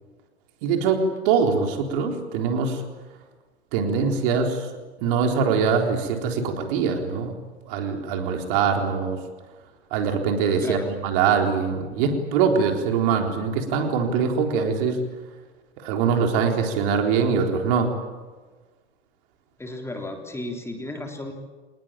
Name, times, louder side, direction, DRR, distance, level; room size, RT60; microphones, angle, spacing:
voice 1, 0.6-2.8 3.7-4.6 5.0-7.3 7.7-9.2 9.9-15.0 15.8-17.9, right 6 dB, 50° right, 3 dB, 4.0 m, -23 dB
voice 2, 10.6-10.9 19.6-21.3, left 1 dB, 10° left, 3 dB, 3.6 m, -34 dB
26.5 x 20.0 x 9.1 m, 1.3 s
hypercardioid pair, 105°, 33 cm